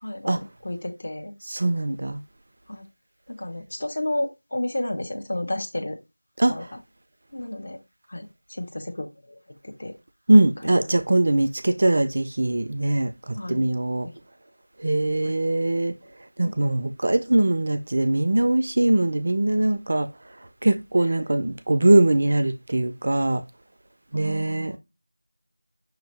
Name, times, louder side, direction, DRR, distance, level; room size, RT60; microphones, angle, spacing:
voice 1, 0.0-1.3 2.7-2.8 3.3-6.0 6.5-6.8 7.3-7.8 8.1-9.9 10.6-10.8 13.3-13.7 14.0-14.1 15.2-15.4 16.4-16.7 21.0-21.1 24.1-24.8, left 1 dB, 40° left, 0.9 m, -32 dB
voice 2, 1.5-2.2 6.4-6.5 10.3-14.1 14.8-16.0 16.4-20.1 20.6-23.4 24.1-24.8, right 2 dB, 35° right, 0.4 m, -21 dB
5.8 x 2.7 x 3.1 m
figure-of-eight pair, 175°, 0 cm